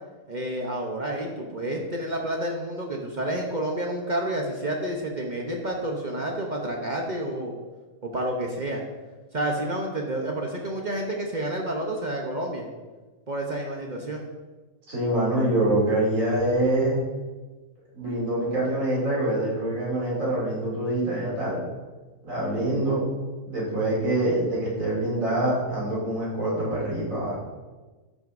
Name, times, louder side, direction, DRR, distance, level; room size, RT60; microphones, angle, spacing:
voice 1, 0.3-7.5 8.0-8.8 9.3-12.7 13.3-14.2, right 1 dB, 40° right, 0 dB, 0.8 m, -29 dB
voice 2, 14.9-17.0 17.9-21.6 22.2-23.0 23.5-27.4, right 1 dB, 85° right, -6 dB, 3.2 m, -25 dB
12.0 x 6.3 x 2.6 m, 1.3 s
omnidirectional pair, 1.4 m